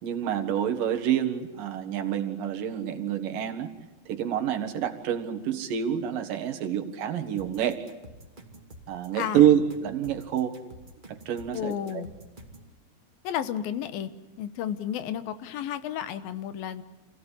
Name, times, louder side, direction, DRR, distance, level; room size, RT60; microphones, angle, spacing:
voice 1, 0.0-3.7 4.1-7.8 8.9-10.6 11.1-12.0, right 10 dB, 70° right, 5 dB, 3.2 m, -27 dB
sound 1, 7.4-12.7, right 1 dB, 15° right, 2.3 m, -48 dB
voice 2, 9.1-9.5 11.5-12.1 13.2-14.1 14.4-16.8, left 10 dB, 85° left, 13 dB, 2.9 m, -32 dB
27.5 x 16.5 x 10.0 m, 1.2 s
omnidirectional pair, 4.1 m